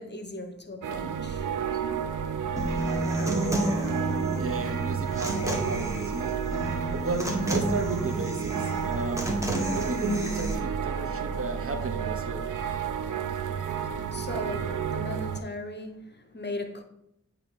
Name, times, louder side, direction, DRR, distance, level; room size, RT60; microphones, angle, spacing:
voice 1, 0.0-1.5 14.1-16.8, left 2 dB, 35° left, 0.9 m, -38 dB
sound 1, 0.8-15.4, right 7 dB, 85° right, 0.5 m, -31 dB
Human voice / Acoustic guitar, 2.6-10.5, right 1 dB, 10° right, 1.3 m, -31 dB
voice 2, 4.4-6.3 6.9-9.3 9.7-12.5, right 3 dB, 50° right, 0.8 m, -34 dB
8.4 x 2.9 x 4.1 m
cardioid pair, 45°, 30 cm